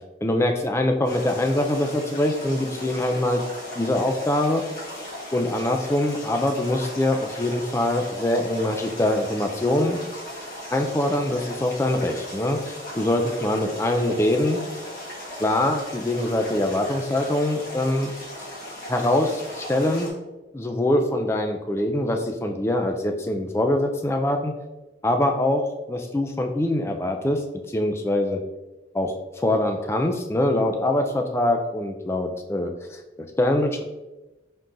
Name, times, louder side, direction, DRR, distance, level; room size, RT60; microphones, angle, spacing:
voice 1, 0.2-3.4 3.8-4.6 5.3-10.0 10.7-14.6 15.4-18.1 18.9-20.1 20.5-24.5 25.0-27.4 27.7-28.4 28.9-33.8, left 1 dB, 15° left, 4 dB, 0.3 m, -23 dB
sound 1, 1.0-20.1, left 1 dB, 55° left, 1.4 m, -37 dB
4.3 x 3.6 x 2.6 m, 1.1 s
head